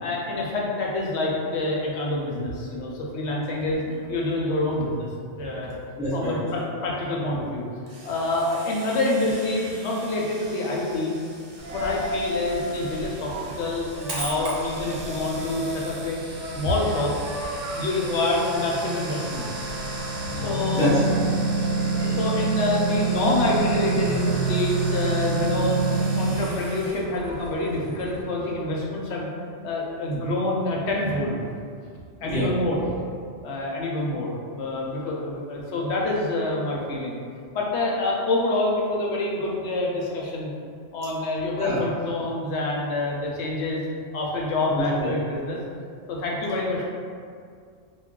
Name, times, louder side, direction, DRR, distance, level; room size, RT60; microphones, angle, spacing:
voice 1, 0.0-5.1 5.4-5.8 6.1-7.6 8.0-11.1 11.7-17.1 17.7-19.5 20.3-20.9 21.8-25.8 26.2-29.3 29.6-31.5 32.2-32.8 33.4-37.2 37.5-40.5 40.9-43.8 44.1-45.6 46.1-46.8, left 2 dB, 70° left, -3 dB, 0.8 m, -27 dB
voice 2, 6.0-6.4 20.7-21.4 32.2-32.5 41.5-41.8 44.7-45.1, equal, 5° right, -12 dB, 0.8 m, -25 dB
sound 1, 7.9-27.0, right 3 dB, 90° right, 0.9 m, -29 dB
Coin (dropping), 11.6-28.2, equal, 60° right, 0.7 m, -36 dB
2.3 x 2.2 x 3.7 m, 2.2 s
omnidirectional pair, 1.3 m